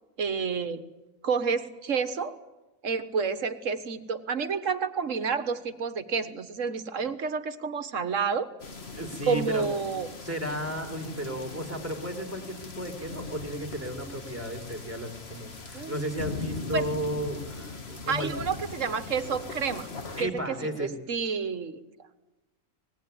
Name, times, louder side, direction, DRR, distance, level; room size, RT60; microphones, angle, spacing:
voice 1, 0.2-0.8 1.2-2.3 2.8-8.5 9.3-10.1 15.7-16.0 16.7-16.9 18.1-19.9 20.2-21.8, right 5 dB, 70° right, 11 dB, 1.7 m, -29 dB
sound 1, 8.6-20.2, left 4 dB, 50° left, 2.1 m, -40 dB
voice 2, 8.9-9.7 10.2-18.3 20.2-20.9, right 1 dB, 10° right, 4 dB, 4.0 m, -34 dB
25.5 x 20.0 x 9.5 m, 1.1 s
omnidirectional pair, 1.4 m